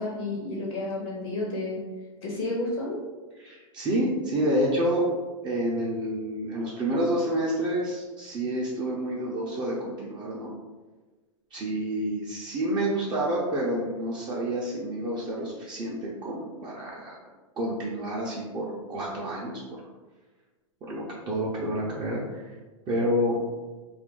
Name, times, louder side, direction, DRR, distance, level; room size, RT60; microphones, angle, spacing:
voice 1, 0.0-1.8 2.2-3.0, left 2 dB, 55° left, -3 dB, 0.8 m, -31 dB
voice 2, 3.4-5.0 5.4-10.5 11.5-17.2 17.6-19.9 20.9-22.5 22.9-23.4, right 1 dB, 25° right, -5 dB, 0.6 m, -29 dB
2.5 x 2.2 x 3.7 m, 1.3 s
hypercardioid pair, 125°, 17 cm